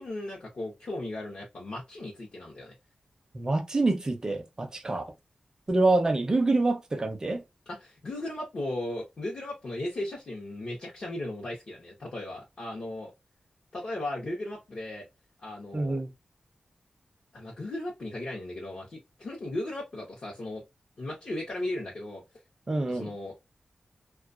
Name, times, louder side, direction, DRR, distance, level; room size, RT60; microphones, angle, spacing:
voice 1, 0.0-2.7 7.7-13.1 13.7-15.1 15.4-16.0 17.3-20.6 21.0-22.2 22.8-23.4, left 1 dB, 55° left, 0.7 m, -36 dB
voice 2, 3.3-5.1 5.7-7.4 15.7-16.1 22.7-23.1, right 2 dB, 30° right, 0.5 m, -26 dB
2.3 x 2.2 x 2.4 m
wide cardioid pair, 135°, 2 cm